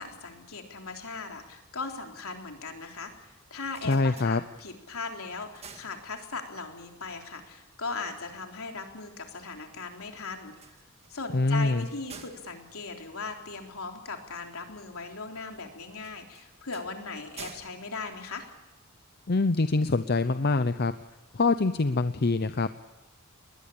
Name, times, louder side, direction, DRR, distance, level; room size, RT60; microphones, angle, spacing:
voice 1, 0.0-10.5 11.1-18.5, left 4 dB, 70° left, 3 dB, 3.6 m, -38 dB
sound 1, 3.4-4.9 5.3-6.6 10.4-13.9 16.0-19.0, right 5 dB, 30° right, 1.9 m, -51 dB
voice 2, 3.8-4.4 11.3-11.8 19.3-20.9 21.3-22.8, left 3 dB, 45° left, 11 dB, 0.7 m, -25 dB
21.5 x 20.5 x 8.6 m, 1.1 s
head